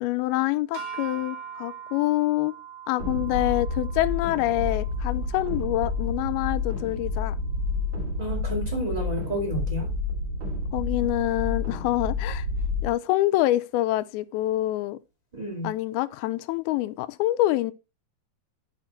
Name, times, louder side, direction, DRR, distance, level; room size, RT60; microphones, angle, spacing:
voice 1, 0.0-2.5 2.9-7.4 10.7-12.5 12.8-15.0 15.6-17.7, left 16 dB, 85° left, 2.4 m, -26 dB
sound 1, 0.7-7.1, right 7 dB, 80° right, 4.0 m, -42 dB
sound 2, 3.0-12.9, left 3 dB, 45° right, 3.5 m, -29 dB
voice 2, 8.2-9.9 15.3-15.7, right 1 dB, 20° right, 1.0 m, -30 dB
10.5 x 4.4 x 4.4 m
omnidirectional pair, 4.4 m